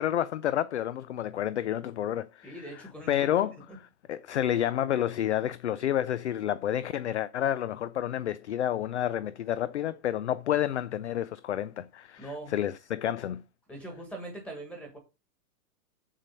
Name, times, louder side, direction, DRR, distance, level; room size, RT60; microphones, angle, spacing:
voice 1, 0.0-2.6 3.1-3.6 4.1-13.4, left 11 dB, 50° left, 0.4 m, -29 dB
voice 2, 2.4-3.4 12.2-12.5 13.7-15.0, right 1 dB, ahead, 1.4 m, -41 dB
7.4 x 6.8 x 5.4 m
hypercardioid pair, 175°, 47 cm